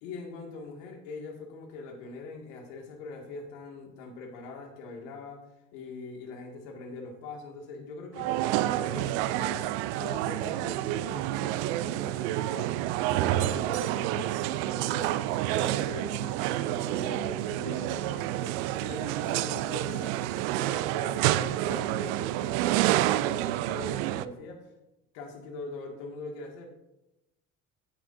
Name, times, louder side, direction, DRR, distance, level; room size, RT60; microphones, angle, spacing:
voice 1, 0.0-5.4 5.7-9.7 10.0-12.8 13.1-24.7 25.1-26.7, left 3 dB, 65° left, 2 dB, 2.1 m, -42 dB
sound 1, 8.1-24.3, right 14 dB, 60° right, 0.5 m, -29 dB
15.0 x 9.2 x 2.6 m, 0.92 s
figure-of-eight pair, 60°, 38 cm